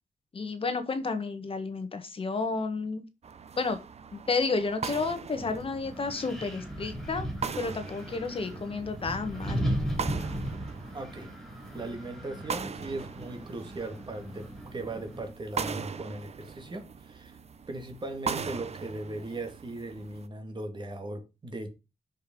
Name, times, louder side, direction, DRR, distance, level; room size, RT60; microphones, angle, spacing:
voice 1, 0.3-3.0 3.5-3.8 4.1-7.3 7.6-9.6, left 4 dB, 45° left, 1.5 m, -31 dB
sound 1, 3.2-20.3, right 6 dB, 55° right, 0.7 m, -40 dB
Wind, 5.4-15.3, equal, ahead, 3.0 m, -37 dB
voice 2, 10.9-11.3 11.7-17.4 17.7-21.7, right 2 dB, 35° right, 2.0 m, -38 dB
6.3 x 5.4 x 5.2 m
wide cardioid pair, 135°, 13 cm